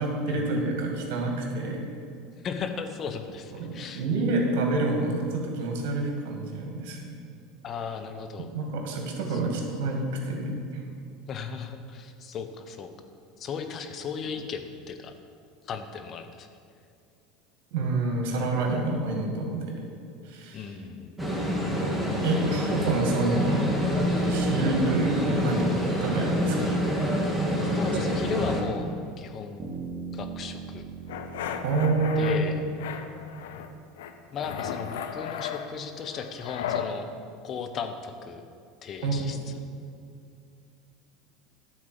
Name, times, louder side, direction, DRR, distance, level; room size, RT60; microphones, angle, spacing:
voice 1, 0.0-1.8 3.5-7.1 8.5-10.8 17.7-19.9 20.3-20.7 22.2-23.7 24.3-25.7 26.0-26.9 31.6-32.5 39.0-39.4, right 2 dB, 65° right, 1 dB, 2.0 m, -28 dB
voice 2, 2.4-4.0 7.6-8.5 9.3-9.6 11.3-12.9 13.4-15.1 15.7-16.5 18.4-18.8 20.5-21.3 27.7-28.9 29.2-29.7 30.1-30.8 32.2-32.6 34.3-37.1 37.4-38.4 38.8-39.6, left 6 dB, 40° left, 7 dB, 0.9 m, -36 dB
sound 1, 21.2-28.6, equal, ahead, 1.8 m, -26 dB
sound 2, 29.6-33.6, right 4 dB, 35° right, 2.1 m, -41 dB
sound 3, 31.1-32.4 32.8-33.7 34.0-36.9, left 8 dB, 75° left, 0.6 m, -35 dB
9.7 x 4.6 x 7.6 m, 2.4 s
hypercardioid pair, 85°, 0 cm